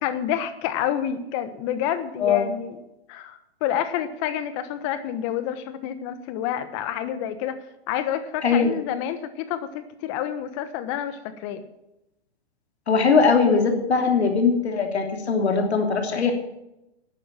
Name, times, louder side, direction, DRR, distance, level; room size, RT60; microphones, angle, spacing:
voice 1, 0.0-2.8 3.1-7.6 7.9-11.6, left 10 dB, 30° left, 12 dB, 1.3 m, -28 dB
voice 2, 8.4-8.7 12.9-16.3, left 5 dB, 90° left, 4 dB, 3.1 m, -20 dB
12.0 x 9.1 x 7.4 m, 0.89 s
hypercardioid pair, 155°, 32 cm